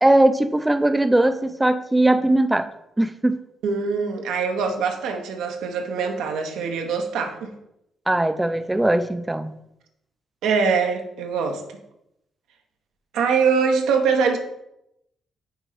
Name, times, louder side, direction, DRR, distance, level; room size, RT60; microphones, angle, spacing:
voice 1, 0.0-2.7 3.0-3.4 8.1-9.5, right 1 dB, 10° right, 10 dB, 0.4 m, -19 dB
voice 2, 3.6-7.5 10.4-11.6 13.1-14.4, right 5 dB, 90° right, 4 dB, 0.9 m, -23 dB
6.1 x 4.1 x 5.0 m, 0.82 s
cardioid pair, 85°, 0 cm